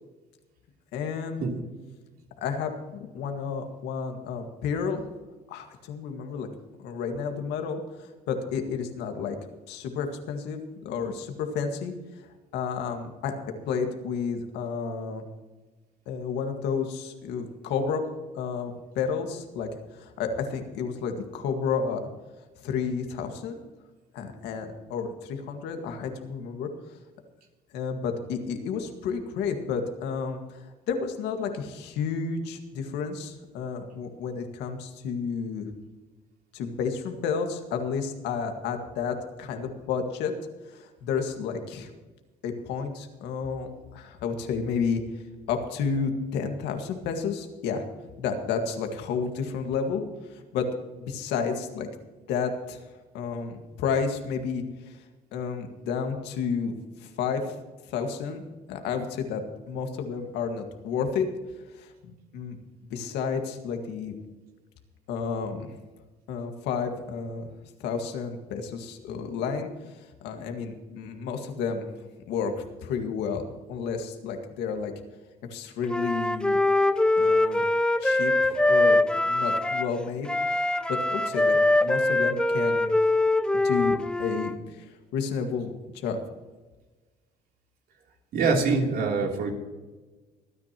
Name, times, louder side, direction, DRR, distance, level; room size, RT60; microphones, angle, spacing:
voice 1, 0.9-1.4 2.4-5.1 5.5-6.5 6.8-9.4 9.7-12.2 12.5-13.3 13.7-15.2 16.1-18.0 18.3-22.0 22.6-23.6 24.1-27.0 27.7-35.7 36.5-40.3 40.7-41.9 42.4-45.2 45.5-47.8 48.2-50.0 50.3-50.7 51.0-51.9 52.3-52.8 53.1-55.0 55.3-57.6 57.9-58.4 58.7-59.4 59.7-61.3 61.7-62.6 62.8-64.1 65.1-65.7 66.3-67.5 67.8-71.9 72.3-73.4 73.7-74.9 75.5-76.6 77.2-77.6 78.0-80.3 80.6-82.9 83.5-86.2, left 6 dB, 85° left, 5 dB, 1.9 m, -31 dB
Wind instrument woodwind instrument, 75.9-79.9 80.2-84.5, left 2 dB, 5° left, 0.6 m, -23 dB
voice 2, 88.3-89.5, right 4 dB, 65° right, 1 dB, 3.2 m, -24 dB
24.5 x 9.8 x 3.0 m, 1.2 s
cardioid pair, 110°, 17 cm